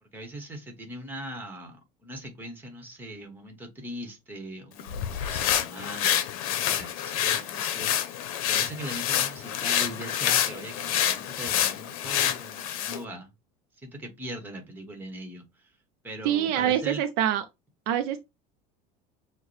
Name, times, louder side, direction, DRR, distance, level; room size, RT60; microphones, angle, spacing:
voice 1, 0.0-13.3 13.8-15.7 16.0-17.0, right 1 dB, 10° right, 1.1 m, -40 dB
sound 1, 4.8-13.0, left 10 dB, 90° left, 0.7 m, -27 dB
voice 2, 16.2-17.4 17.9-18.2, right 10 dB, 60° right, 0.5 m, -25 dB
6.4 x 2.2 x 3.2 m
cardioid pair, 155°, 18 cm